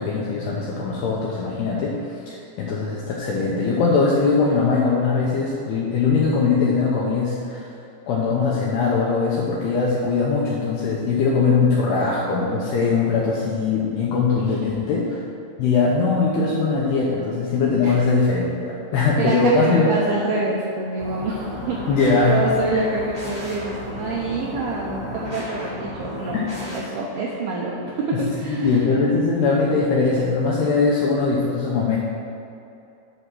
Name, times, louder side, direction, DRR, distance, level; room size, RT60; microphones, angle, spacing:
voice 1, 0.0-2.0 2.3-7.6 8.1-15.2 15.6-19.9 21.9-22.4 28.5-32.0, left 4 dB, 75° left, -4 dB, 2.5 m, -21 dB
voice 2, 19.2-21.8 22.3-26.4 26.7-29.0, right 2 dB, 80° right, -3 dB, 2.3 m, -26 dB
sound 1, 21.0-26.8, equal, 55° left, 0.5 m, -33 dB
8.6 x 5.7 x 6.2 m, 2.7 s
omnidirectional pair, 5.5 m